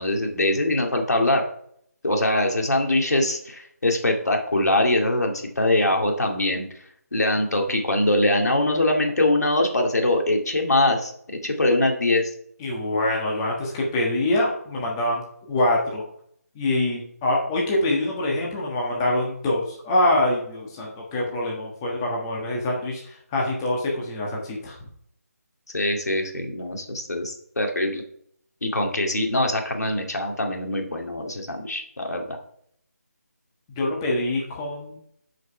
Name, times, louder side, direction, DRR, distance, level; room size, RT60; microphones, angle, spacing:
voice 1, 0.0-1.5 2.0-6.7 7.1-11.1 11.4-12.2 25.7-28.0 28.6-32.4, left 1 dB, 70° left, 2 dB, 2.2 m, -23 dB
voice 2, 12.6-15.2 15.5-16.0 16.5-24.8 33.8-35.0, left 1 dB, 15° left, -3 dB, 1.3 m, -25 dB
8.1 x 5.2 x 5.6 m, 0.67 s
figure-of-eight pair, 165°, 9 cm